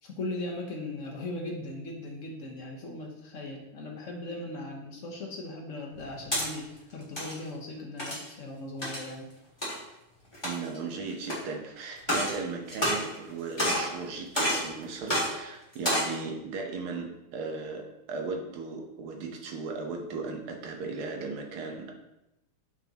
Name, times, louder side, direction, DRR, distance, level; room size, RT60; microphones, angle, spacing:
voice 1, 0.0-9.3, left 2 dB, 45° left, 0 dB, 1.0 m, -38 dB
sound 1, 5.9-6.5 7.0-7.3 8.0-8.3 8.8-9.1 9.6-9.7 10.3-10.8 11.3-11.4 12.0-12.4 12.7-13.3 13.6-13.9 14.3-14.7 15.1-15.3 15.7-16.1, equal, 10° left, 2.0 m, -28 dB
voice 2, 10.4-21.9, right 4 dB, 75° right, 2 dB, 1.8 m, -37 dB
6.8 x 6.3 x 2.9 m, 0.89 s
omnidirectional pair, 2.4 m